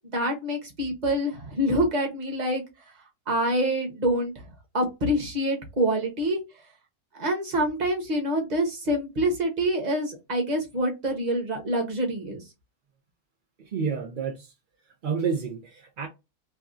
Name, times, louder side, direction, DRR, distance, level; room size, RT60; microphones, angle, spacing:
voice 1, 0.1-2.6 3.3-4.3 4.7-6.4 7.2-12.4, equal, 30° right, 0.9 m, -26 dB
voice 2, 13.7-14.5 15.0-16.1, right 6 dB, 70° right, 0.4 m, -29 dB
3.5 x 2.3 x 2.5 m
omnidirectional pair, 1.7 m